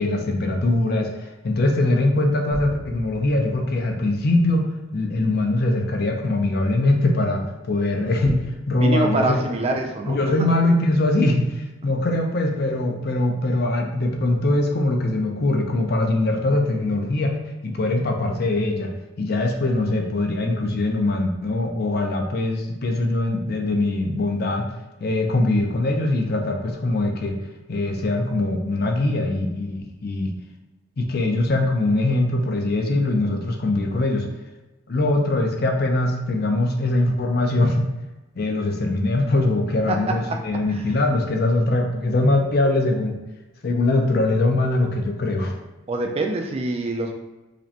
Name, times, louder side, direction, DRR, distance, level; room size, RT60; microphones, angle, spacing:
voice 1, 0.0-9.5 10.1-17.4 17.6-18.9 19.2-24.7 25.0-27.4 27.7-30.3 31.0-34.3 34.9-37.9 38.4-43.1 43.6-45.6, left 2 dB, 50° left, 3 dB, 0.5 m, -22 dB
sound 1, 2.5-4.5, equal, 80° right, 0.8 m, -38 dB
voice 2, 8.8-10.5 39.9-40.4 40.7-40.8 45.9-47.1, right 2 dB, 30° right, 3 dB, 0.3 m, -25 dB
4.9 x 2.1 x 2.8 m, 1.1 s
head